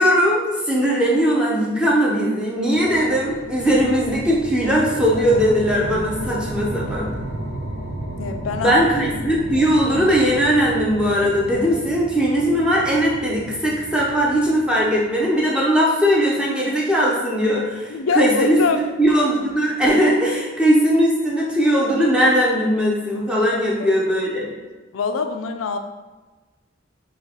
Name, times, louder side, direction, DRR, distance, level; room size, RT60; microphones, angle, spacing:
voice 1, 0.0-7.1 8.6-18.6 19.0-24.5, equal, 5° right, -4 dB, 0.7 m, -19 dB
sound 1, 2.7-15.3, right 1 dB, 70° right, 0.7 m, -33 dB
voice 2, 8.2-8.8 17.9-18.8 23.8-23.9 24.9-25.8, left 4 dB, 75° left, 7 dB, 0.4 m, -23 dB
6.7 x 2.4 x 2.9 m, 1.2 s
head